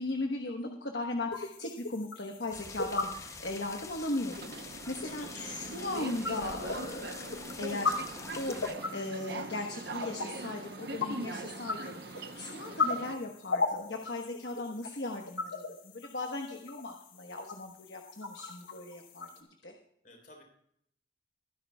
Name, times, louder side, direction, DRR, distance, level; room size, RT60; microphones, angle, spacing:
voice 1, 0.0-8.1 8.4-8.6 8.9-19.3 19.6-19.7, left 2 dB, 60° left, 2 dB, 1.2 m, -38 dB
sound 1, 1.3-19.4, left 3 dB, 90° left, 1.6 m, -38 dB
sound 2, 2.5-8.7, left 3 dB, 15° left, 0.6 m, -46 dB
Subway metro underground, 4.2-13.1, right 2 dB, 55° right, 0.8 m, -42 dB
voice 2, 5.1-6.2 20.0-20.4, left 1 dB, 45° left, 1 dB, 3.9 m, -53 dB
23.0 x 10.5 x 2.3 m, 0.71 s
head